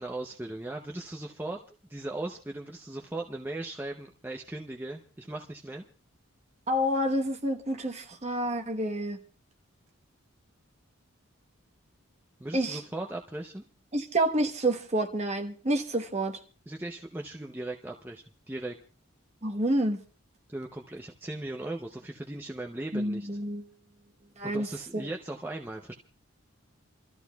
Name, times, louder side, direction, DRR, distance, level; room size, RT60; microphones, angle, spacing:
voice 1, 0.0-5.8 12.4-13.6 16.7-18.8 20.5-23.3 24.4-25.9, right 2 dB, 10° right, 0.6 m, -38 dB
voice 2, 6.7-9.2 12.5-12.8 13.9-16.4 19.4-20.0 22.9-23.6 24.4-24.7 24.9-25.1, right 1 dB, 30° right, 1.1 m, -28 dB
28.5 x 13.5 x 2.3 m
head